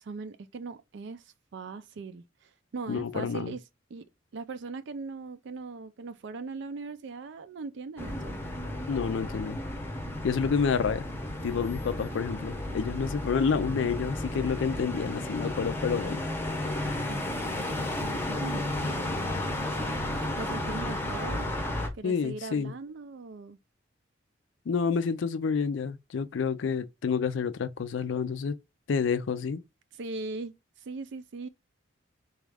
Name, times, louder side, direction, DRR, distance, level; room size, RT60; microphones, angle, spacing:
voice 1, 0.0-3.6 3.9-4.0 4.3-8.4 16.9-17.4 18.4-19.3 20.4-21.5 21.9-23.6 29.9-31.5, right 3 dB, 60° right, 0.4 m, -40 dB
voice 2, 2.9-3.5 8.9-9.6 10.2-11.0 11.4-16.2 22.0-22.7 24.7-28.5 28.9-29.6, left 6 dB, 65° left, 0.4 m, -29 dB
sound 1, 8.0-21.9, left 1 dB, 10° left, 0.7 m, -33 dB
4.0 x 2.4 x 3.3 m
head